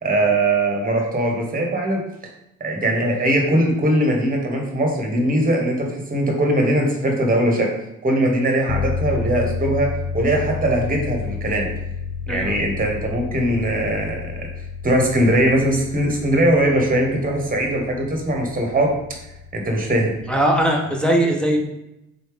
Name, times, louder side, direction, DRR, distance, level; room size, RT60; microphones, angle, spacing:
voice 1, 0.0-2.0 2.6-7.7 8.0-11.7 12.3-14.5 14.8-18.9 19.5-20.1, right 1 dB, 30° right, 1 dB, 1.1 m, -20 dB
sound 1, 8.7-20.5, left 5 dB, 85° left, 0.4 m, -31 dB
voice 2, 20.3-21.6, right 1 dB, 5° left, -1 dB, 0.7 m, -19 dB
4.0 x 3.1 x 3.4 m, 0.86 s
cardioid pair, 90°, 30 cm